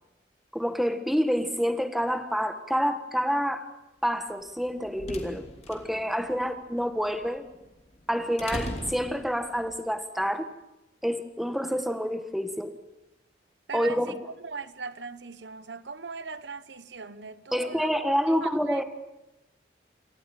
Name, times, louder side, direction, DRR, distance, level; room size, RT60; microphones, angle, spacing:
voice 1, 0.5-3.7 4.0-7.4 8.1-10.5 11.0-12.7 13.7-14.2 17.5-18.8, equal, ahead, 1.4 m, -28 dB
sound 1, 4.5-9.8, left 1 dB, 35° left, 2.9 m, -40 dB
voice 2, 13.7-17.9 18.3-18.8, right 4 dB, 85° right, 1.1 m, -39 dB
27.5 x 14.0 x 9.1 m
head